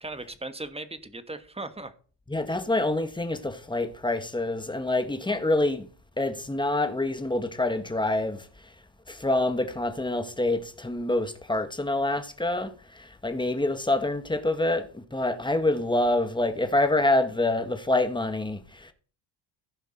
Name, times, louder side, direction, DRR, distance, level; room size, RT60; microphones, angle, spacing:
voice 1, 0.0-1.9, right 2 dB, 15° right, 1.5 m, -37 dB
voice 2, 2.3-5.8 6.2-8.4 9.1-18.9, left 2 dB, 10° left, 1.6 m, -26 dB
15.5 x 5.8 x 4.5 m
supercardioid pair, 65°, 46 cm